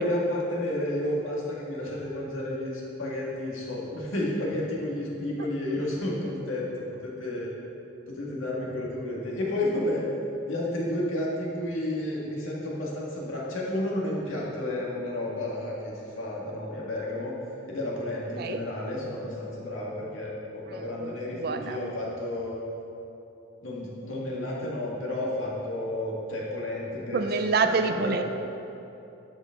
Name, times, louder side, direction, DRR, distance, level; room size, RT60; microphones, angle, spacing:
voice 1, 0.0-6.6 7.0-7.5 8.1-10.0 10.4-17.3 17.7-22.6 23.6-27.2 27.6-28.1, left 1 dB, 85° left, -4 dB, 1.8 m, -31 dB
voice 2, 20.7-21.8 27.1-28.2, right 4 dB, 50° right, 7 dB, 0.4 m, -27 dB
12.5 x 5.1 x 3.7 m, 2.8 s
head